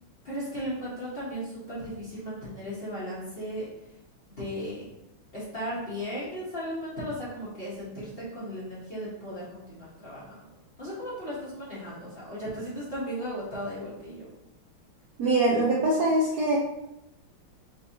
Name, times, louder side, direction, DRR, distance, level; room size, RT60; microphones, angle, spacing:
voice 1, 0.2-3.7 4.3-4.8 5.3-10.4 10.8-14.3, equal, 35° left, -9 dB, 1.0 m, -36 dB
voice 2, 15.2-16.6, right 2 dB, 70° right, -4 dB, 1.0 m, -23 dB
4.6 x 3.2 x 2.7 m, 0.87 s
omnidirectional pair, 2.3 m